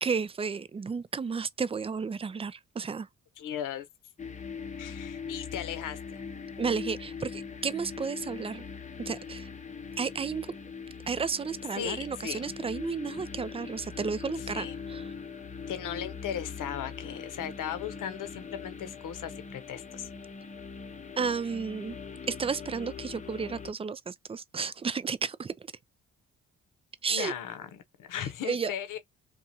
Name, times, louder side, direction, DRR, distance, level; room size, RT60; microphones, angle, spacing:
voice 1, 0.0-3.1 6.6-8.6 9.1-9.5 10.0-10.5 11.1-15.1 21.2-22.0 22.3-25.7 27.0-27.3 28.2-28.7, right 5 dB, 20° right, 0.3 m, -32 dB
voice 2, 3.4-3.9 4.8-6.2 11.7-12.5 14.5-14.7 15.7-20.0 27.1-27.7 28.0-29.0, left 9 dB, 70° left, 0.8 m, -37 dB
sound 1, 4.2-23.7, left 5 dB, 20° left, 0.6 m, -41 dB
2.6 x 2.3 x 2.8 m
supercardioid pair, 55°, 33 cm